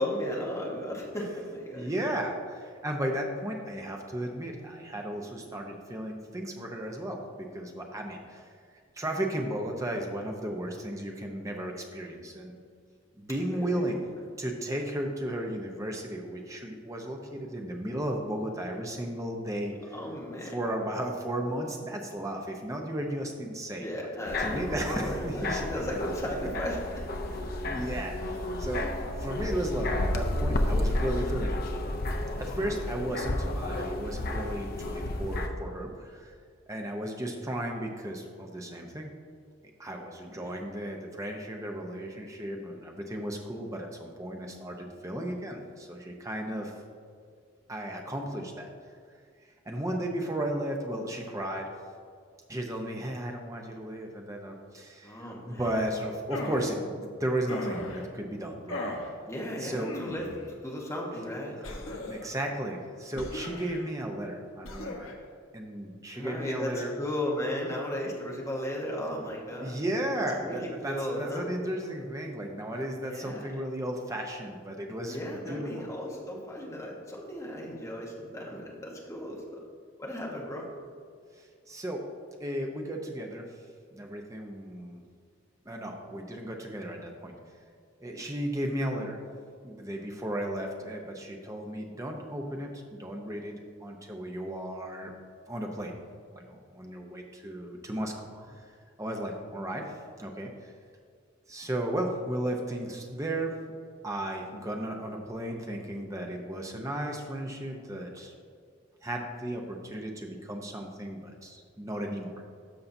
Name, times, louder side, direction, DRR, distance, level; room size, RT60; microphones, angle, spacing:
voice 1, 0.0-1.9 13.5-13.8 19.9-20.6 23.8-27.1 37.3-37.4 40.4-40.5 55.0-55.7 59.3-62.0 66.1-69.8 70.4-71.5 73.0-73.4 75.1-79.6 80.0-80.7 98.1-98.2, left 1 dB, 15° left, -3 dB, 1.1 m, -35 dB
voice 2, 1.7-8.5 9.0-12.5 13.2-14.0 14.4-19.9 20.4-23.9 24.4-25.8 27.7-31.6 32.4-36.3 36.7-39.1 39.8-46.7 47.7-48.7 49.4-51.7 52.5-58.9 59.6-59.9 62.0-65.1 65.5-66.9 69.6-75.9 81.3-82.0 82.4-83.5 83.9-85.0 85.6-87.4 88.0-89.2 89.6-93.5 93.8-95.1 95.5-95.9 96.3-98.5 99.0-99.9 100.2-100.7 101.5-103.5 104.0-108.3 109.0-112.4, right 1 dB, 15° right, 1 dB, 0.7 m, -34 dB
sound 1, 24.3-35.5, left 1 dB, 45° left, 0.5 m, -31 dB
sound 2, 56.3-56.7 57.5-58.0 58.7-59.1 59.8-60.4 61.6-62.3 63.2-63.8 64.6-65.1, left 1 dB, 80° left, 1.1 m, -38 dB
12.5 x 5.6 x 2.7 m, 2.1 s
head